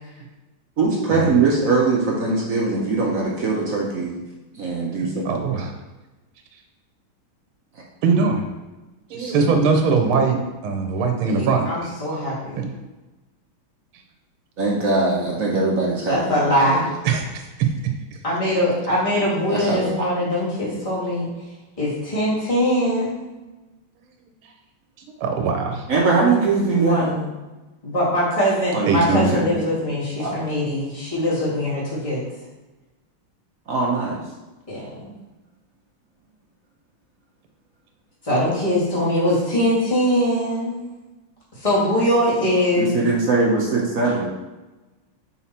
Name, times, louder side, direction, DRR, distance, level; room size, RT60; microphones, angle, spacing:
voice 1, 0.8-4.1 4.5-5.5 9.1-9.6 14.6-16.9 19.5-20.1 25.9-27.1 28.7-29.6 30.2-30.4 33.7-34.2 42.8-44.3, right 3 dB, 55° right, -3 dB, 1.0 m, -21 dB
voice 2, 5.3-5.7 8.0-8.4 9.1-10.4 10.6-11.7 12.1-12.2 12.6-12.7 17.1-17.4 25.2-25.8 28.9-29.3, right 4 dB, 85° right, 4 dB, 1.6 m, -21 dB
voice 3, 11.3-12.7 16.1-16.9 18.2-21.3 21.8-23.3 26.7-27.2 27.8-32.2 34.7-35.2 38.2-40.9 41.6-43.0, equal, 15° left, -8 dB, 1.9 m, -22 dB
5.8 x 4.0 x 4.3 m, 1.1 s
omnidirectional pair, 2.3 m